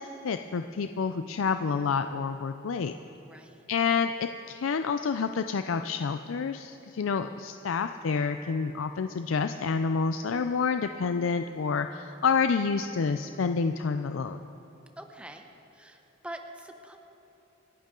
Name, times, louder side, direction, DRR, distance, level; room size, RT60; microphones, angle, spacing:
voice 1, 0.0-2.9 3.7-14.4, left 5 dB, 85° left, 8 dB, 0.4 m, -28 dB
voice 2, 3.2-3.6 15.0-15.5 15.7-17.0, right 1 dB, 5° right, 4 dB, 0.8 m, -44 dB
27.5 x 11.0 x 3.8 m, 3.0 s
head